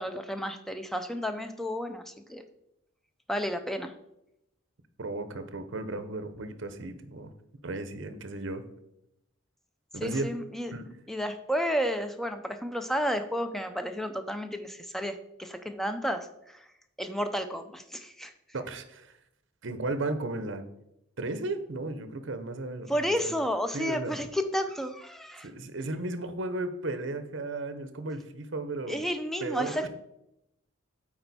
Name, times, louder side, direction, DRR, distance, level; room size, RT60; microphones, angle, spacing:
voice 1, 0.0-2.4 3.3-3.9 10.0-10.7 11.1-16.6 17.0-18.3 22.9-25.5 28.9-29.9, equal, ahead, 7 dB, 0.4 m, -32 dB
voice 2, 5.0-7.3 7.6-8.6 9.9-10.3 10.7-10.9 18.5-19.2 19.6-20.6 21.2-23.4 23.7-24.1 25.4-29.0 29.4-29.9, right 2 dB, 60° right, 10 dB, 0.7 m, -35 dB
8.7 x 4.4 x 4.1 m, 0.83 s
head